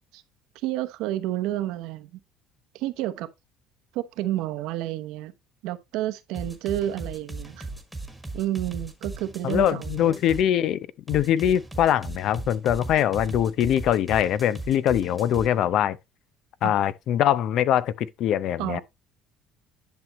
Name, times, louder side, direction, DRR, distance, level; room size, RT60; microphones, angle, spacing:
voice 1, 0.6-2.1 2.7-3.3 3.9-5.3 5.6-7.7 8.3-10.1 16.6-16.8 18.6-18.8, right 13 dB, 80° right, 0.9 m, -30 dB
sound 1, 6.3-10.5 11.1-15.5, right 2 dB, ahead, 1.6 m, -37 dB
voice 2, 9.4-16.0 16.6-18.8, left 10 dB, 55° left, 0.6 m, -23 dB
10.5 x 6.1 x 3.0 m
cardioid pair, 145°, 0 cm